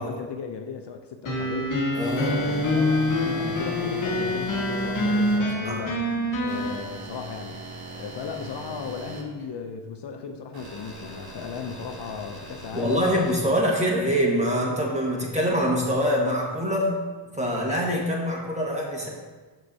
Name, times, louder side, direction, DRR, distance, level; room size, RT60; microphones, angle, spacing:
voice 1, 0.0-1.8 2.2-6.0 6.4-7.6 8.0-13.1, left 6 dB, 55° left, 4 dB, 0.6 m, -36 dB
sound 1, 1.2-6.7, left 1 dB, 40° left, 1.2 m, -25 dB
voice 2, 2.0-2.4 5.6-5.8 12.7-17.1 17.3-19.1, equal, 15° right, -2 dB, 1.5 m, -24 dB
sound 2, 2.0-5.4 6.5-9.2 10.5-13.4, right 1 dB, 45° right, 1.2 m, -39 dB
6.6 x 6.4 x 2.7 m, 1.3 s
cardioid pair, 95°, 50 cm